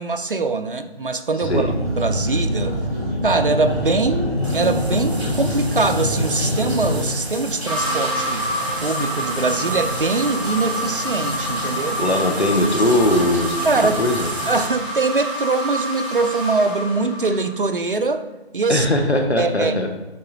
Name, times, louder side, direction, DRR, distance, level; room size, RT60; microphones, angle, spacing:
voice 1, 0.0-1.7 2.0-2.8 3.2-8.5 8.8-12.0 13.6-14.0 14.5-18.3 18.5-18.9 19.4-19.8, right 3 dB, 55° right, 8 dB, 0.6 m, -22 dB
sound 1, 1.4-7.0, equal, 15° right, 2.1 m, -24 dB
sound 2, 4.4-14.7, right 1 dB, 80° right, 1.3 m, -31 dB
sound 3, 7.7-17.6, equal, 20° left, 1.9 m, -27 dB
voice 2, 12.0-14.3 18.7-19.9, left 1 dB, 85° left, 4 dB, 1.3 m, -20 dB
8.6 x 3.8 x 4.2 m, 1.1 s
figure-of-eight pair, 165°, 32 cm